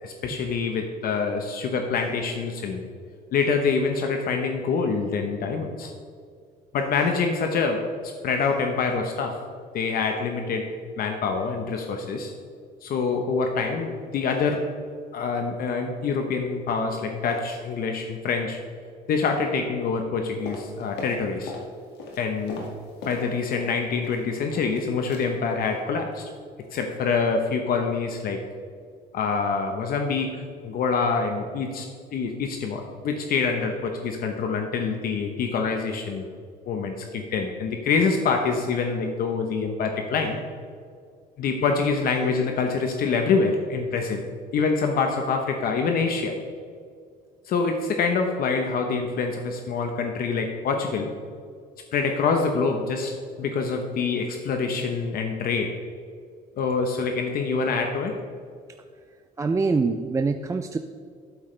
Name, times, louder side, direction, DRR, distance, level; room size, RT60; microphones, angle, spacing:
voice 1, 0.0-2.8 3.3-5.9 6.7-9.4 9.7-12.3 12.8-14.7 15.1-18.6 19.1-21.5 22.2-22.7 23.0-26.2 26.7-28.4 29.1-36.3 36.7-40.4 41.4-44.2 44.5-46.4 47.5-51.1 51.9-55.8 56.6-58.2, left 4 dB, 60° left, 4 dB, 1.0 m, -26 dB
sound 1, 20.4-21.7 21.9-23.7 24.0-24.8 25.1-25.3 25.6-25.8 26.1-26.4 26.6-26.7, left 2 dB, 80° left, 2.1 m, -39 dB
voice 2, 59.4-60.8, right 4 dB, 20° right, 7 dB, 0.4 m, -24 dB
12.0 x 9.1 x 3.3 m, 2.2 s
cardioid pair, 110°, 17 cm